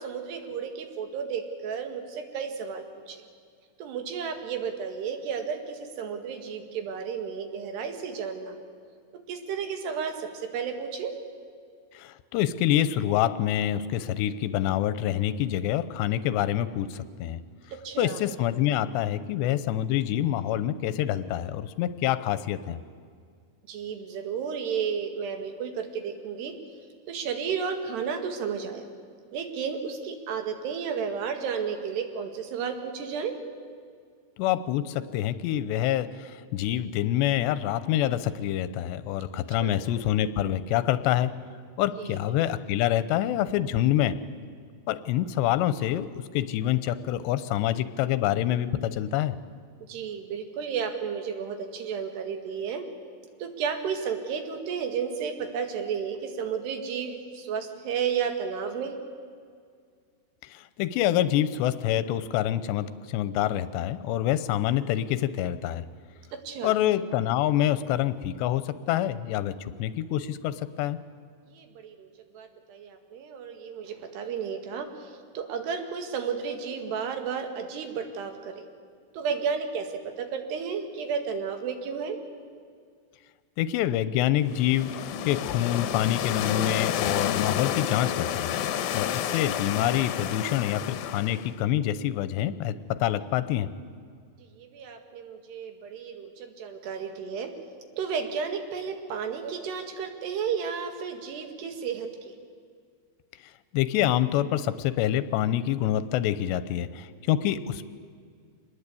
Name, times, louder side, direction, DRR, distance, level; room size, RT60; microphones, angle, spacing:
voice 1, 0.0-3.2 3.8-8.7 9.3-11.1 17.8-18.2 23.7-26.5 27.1-28.9 29.3-33.3 39.6-39.8 42.0-42.2 49.9-52.8 53.4-58.9 66.5-66.8 71.5-72.1 72.3-78.5 79.1-82.2 89.2-89.3 94.6-97.5 98.0-102.3, right 6 dB, 75° right, 5 dB, 3.9 m, -32 dB
voice 2, 11.9-17.4 18.0-22.8 34.4-41.3 41.8-44.2 44.9-49.3 60.4-65.8 66.6-71.0 83.6-88.5 88.9-93.7 103.7-107.8, left 12 dB, 90° left, 13 dB, 3.0 m, -26 dB
sound 1, 84.5-91.6, left 10 dB, 70° left, 2.4 m, -30 dB
25.5 x 20.0 x 8.5 m, 2.1 s
omnidirectional pair, 4.9 m